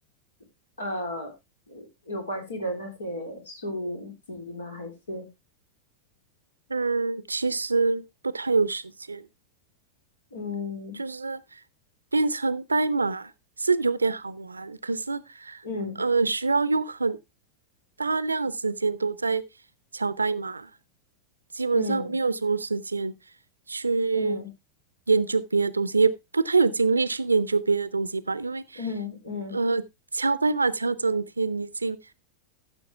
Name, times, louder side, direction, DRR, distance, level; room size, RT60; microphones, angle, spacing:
voice 1, 0.8-1.3 1.7-5.3 10.3-11.0 15.6-16.0 21.7-22.1 24.1-24.5 28.8-29.5, left 2 dB, 70° left, 3.5 m, -34 dB
voice 2, 6.7-9.3 10.9-11.6 12.1-13.3 13.6-15.6 16.0-17.2 18.0-19.4 19.9-20.7 21.5-23.1 23.7-24.4 25.1-28.8 29.5-29.8 30.1-32.0, right 4 dB, 80° right, 0.6 m, -25 dB
14.5 x 6.5 x 3.3 m
figure-of-eight pair, 90°, 0 cm